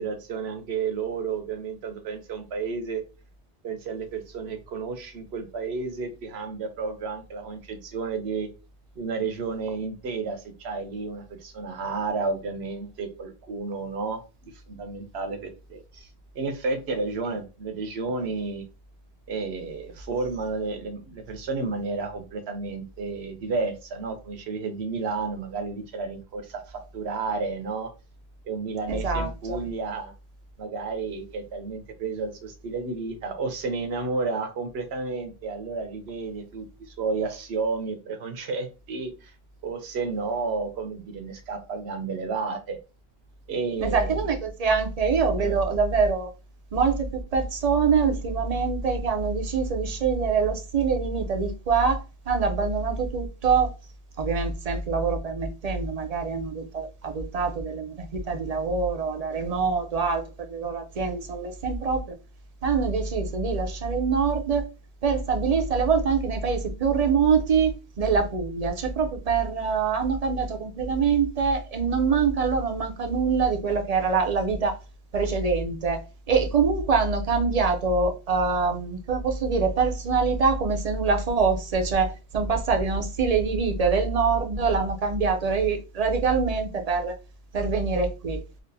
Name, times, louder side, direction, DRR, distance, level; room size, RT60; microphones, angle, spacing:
voice 1, 0.0-3.0 3.6-8.5 9.0-14.2 14.7-16.1 16.3-18.6 19.3-27.9 28.5-30.1 30.6-39.3 39.6-42.8 43.5-44.2 45.4-45.5, right 4 dB, 70° right, 1.0 m, -31 dB
voice 2, 28.9-29.6 43.8-46.3 46.7-53.7 54.2-62.2 62.6-64.7 65.0-74.8 75.1-76.0 76.3-87.1 87.5-88.4, right 5 dB, 45° right, 0.6 m, -24 dB
4.2 x 2.5 x 2.6 m
omnidirectional pair, 1.1 m